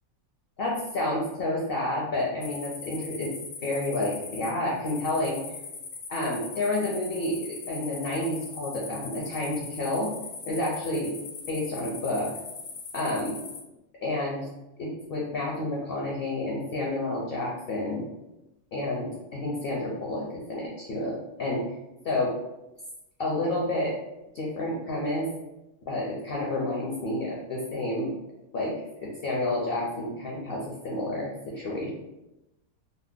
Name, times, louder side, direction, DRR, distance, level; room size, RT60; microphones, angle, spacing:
voice 1, 0.6-3.3 3.6-5.4 6.1-10.2 10.5-11.1 11.5-12.3 12.9-13.4 14.0-14.5 14.8-18.0 18.7-21.6 22.0-22.3 23.2-23.9 24.3-25.3 25.8-28.1 28.5-28.7 29.0-31.9, left 1 dB, 60° left, -3 dB, 0.6 m, -30 dB
sound 1, 2.4-13.6, left 5 dB, 80° left, 1.1 m, -41 dB
2.8 x 2.0 x 3.5 m, 0.95 s
omnidirectional pair, 1.5 m